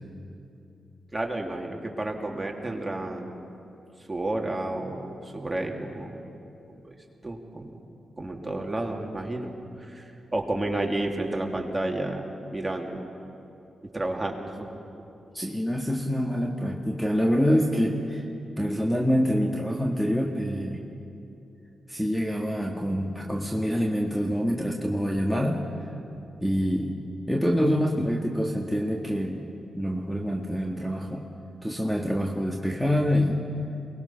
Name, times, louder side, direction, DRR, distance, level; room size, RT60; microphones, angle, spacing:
voice 1, 1.1-3.4 4.1-6.2 6.7-6.9 7.2-7.8 8.2-9.5 9.8-13.1 13.8-14.7, right 1 dB, 20° right, 1 dB, 3.0 m, -31 dB
voice 2, 15.3-18.2 18.6-20.8 21.9-25.6 26.4-27.0 27.3-29.4 29.8-31.3 31.6-33.4, equal, 5° left, 1 dB, 1.8 m, -26 dB
23.0 x 20.0 x 5.8 m, 2.7 s
supercardioid pair, 45°, 0 cm